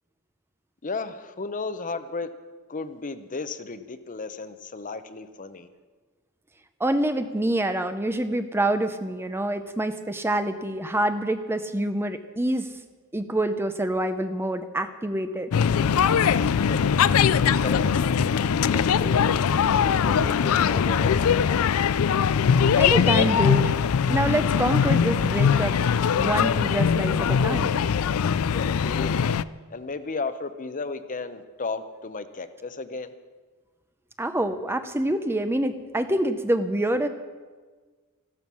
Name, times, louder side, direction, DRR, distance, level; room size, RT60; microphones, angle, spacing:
voice 1, 0.8-2.3 2.7-5.7 16.7-16.8 17.6-18.1 18.7-19.3 20.0-21.7 28.5-29.2 29.7-33.1, left 4 dB, 35° left, 11 dB, 0.8 m, -34 dB
voice 2, 6.8-12.7 13.1-15.5 22.8-23.8 24.1-27.8 34.2-37.1, right 1 dB, 10° right, 9 dB, 0.6 m, -26 dB
sound 1, 15.5-29.4, left 7 dB, 70° left, 0.4 m, -21 dB
sound 2, 15.7-21.5, equal, 60° right, 3.7 m, -37 dB
14.5 x 12.5 x 6.2 m, 1.4 s
head